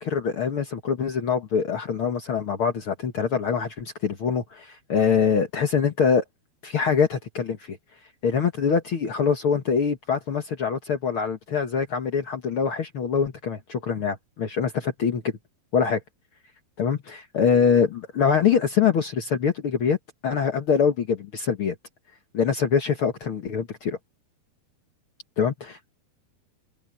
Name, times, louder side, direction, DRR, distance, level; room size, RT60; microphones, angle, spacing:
voice 1, 0.0-6.2 6.6-7.8 8.2-15.2 15.7-16.0 16.8-20.0 20.2-21.7 22.3-24.0 25.4-25.9, left 6 dB, 65° left, 1.3 m, -24 dB
open air
omnidirectional pair, 4.6 m